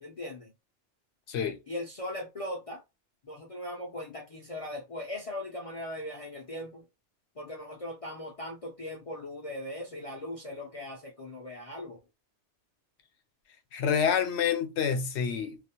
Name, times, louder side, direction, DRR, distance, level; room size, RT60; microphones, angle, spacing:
voice 1, 0.0-0.5 1.7-2.8 3.2-6.8 7.4-12.0, left 1 dB, 45° left, 0.4 m, -39 dB
voice 2, 1.3-1.6 13.7-15.6, left 7 dB, 75° left, 0.9 m, -28 dB
2.4 x 2.1 x 2.7 m
omnidirectional pair, 1.2 m